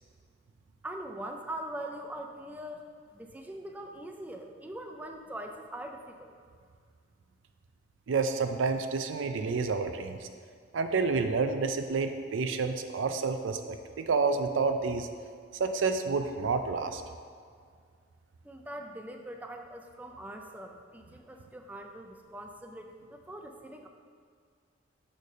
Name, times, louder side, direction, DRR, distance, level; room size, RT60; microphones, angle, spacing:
voice 1, 0.8-6.4 18.4-23.9, right 1 dB, 10° right, 3 dB, 0.3 m, -42 dB
voice 2, 8.1-10.3 10.7-15.1 15.6-17.0, right 4 dB, 90° right, 7 dB, 0.4 m, -29 dB
6.4 x 3.3 x 5.4 m, 2.1 s
head